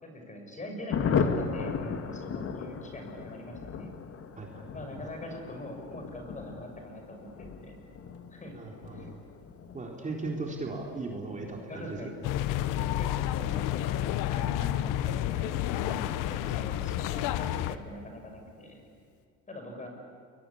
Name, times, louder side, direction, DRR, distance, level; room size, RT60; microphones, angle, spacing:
voice 1, 0.0-3.9 4.7-7.8 8.3-9.1 11.7-12.1 13.0-15.6 15.9-18.8 19.5-19.9, left 1 dB, 20° left, 3 dB, 6.4 m, -43 dB
Thunder, 0.9-17.0 17.3-17.4 17.7-17.8 18.1-18.5, left 5 dB, 45° left, 2.5 m, -37 dB
voice 2, 4.4-4.7 8.5-9.2 9.7-12.0 15.9-16.0, right 3 dB, 25° right, 0 dB, 4.0 m, -37 dB
sound 1, 12.2-17.8, left 12 dB, 70° left, 1.2 m, -30 dB
30.0 x 23.0 x 8.7 m, 2.2 s
cardioid pair, 115°, 33 cm